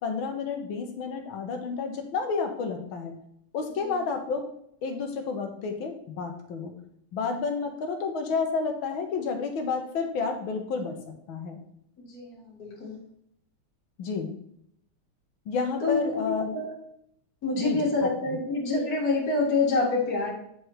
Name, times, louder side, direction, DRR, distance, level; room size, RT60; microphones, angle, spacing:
voice 1, 0.0-3.2 3.5-4.5 4.8-6.7 7.1-11.6 14.0-14.4 15.5-16.6 17.5-18.4, left 4 dB, 70° left, 4 dB, 1.8 m, -30 dB
voice 2, 12.0-12.9 15.8-16.7 17.4-20.3, left 3 dB, 45° left, -4 dB, 2.4 m, -27 dB
8.8 x 4.8 x 3.2 m, 0.72 s
omnidirectional pair, 2.3 m